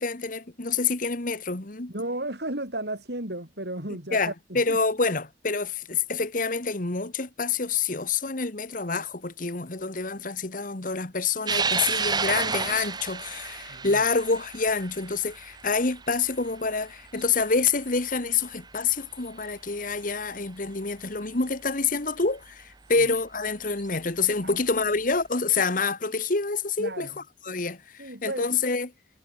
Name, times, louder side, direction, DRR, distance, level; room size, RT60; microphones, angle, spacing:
voice 1, 0.0-1.9 4.1-28.9, left 4 dB, 50° left, 1.8 m, -27 dB
voice 2, 1.9-4.8 13.7-14.0 22.9-23.1 24.4-24.6 26.8-27.1 28.0-28.5, right 1 dB, 65° right, 6.4 m, -34 dB
sound 1, 11.5-18.1 18.6-18.7 19.9-20.0 22.2-22.3 23.7-24.0, right 5 dB, 25° right, 1.3 m, -31 dB
head